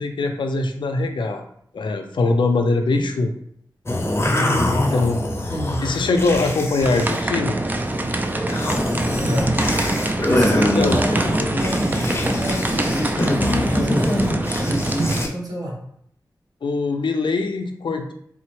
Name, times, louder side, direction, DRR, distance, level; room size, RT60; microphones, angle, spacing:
voice 1, 0.0-1.4 1.7-3.3 4.7-5.2 5.8-7.6 10.6-11.0 16.6-18.1, left 3 dB, 80° left, 5 dB, 0.4 m, -22 dB
sound 1, 3.9-7.2 7.6-7.9 8.4-15.3, left 1 dB, 35° left, 0.6 m, -24 dB
voice 2, 4.3-4.7 5.5-5.8 9.2-9.6 10.3-13.2 13.7-14.8 15.2-15.7, equal, 50° right, -4 dB, 1.1 m, -28 dB
sound 2, 6.8-15.2, right 2 dB, 20° right, 0.3 m, -24 dB
sound 3, 10.1-15.1, right 1 dB, 80° right, 0.6 m, -38 dB
3.6 x 2.0 x 3.0 m, 0.68 s
cardioid pair, 55°, 8 cm